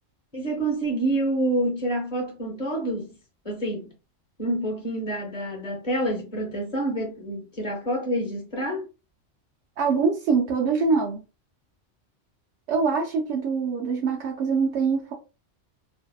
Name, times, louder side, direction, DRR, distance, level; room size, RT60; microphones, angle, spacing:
voice 1, 0.3-3.1 3.4-3.9 4.4-8.8, right 1 dB, 40° left, 0.9 m, -27 dB
voice 2, 9.8-11.2 12.7-15.1, right 5 dB, 70° right, 0.9 m, -24 dB
2.7 x 2.1 x 2.2 m
omnidirectional pair, 1.2 m